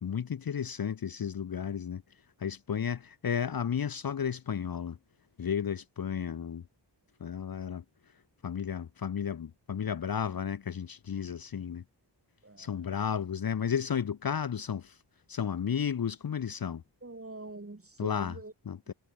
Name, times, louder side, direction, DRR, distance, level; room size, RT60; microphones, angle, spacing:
voice 1, 0.0-2.0 2.4-5.0 5.4-6.6 7.2-7.8 8.4-11.8 12.6-14.9 15.3-16.8 18.0-18.3 18.7-18.9, left 7 dB, 55° left, 0.7 m, -33 dB
voice 2, 12.4-13.0 17.0-18.5, right 2 dB, 30° right, 7.0 m, -45 dB
wide cardioid pair, 90°, 42 cm